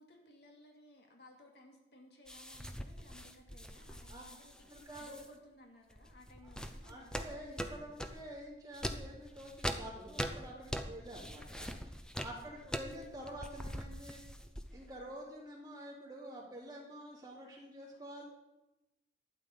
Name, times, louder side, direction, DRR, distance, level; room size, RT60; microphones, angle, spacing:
voice 1, 0.0-7.3 12.5-12.6, left 1 dB, 75° left, 1 dB, 2.3 m, -59 dB
sound 1, 2.3-5.3 5.9-8.3 8.7-14.9, equal, 5° left, 0.7 m, -43 dB
voice 2, 4.7-5.2 6.4-6.5 6.8-11.7 12.2-14.2 14.7-18.2, right 1 dB, 20° right, -4 dB, 3.2 m, -48 dB
12.0 x 8.9 x 5.4 m, 0.97 s
head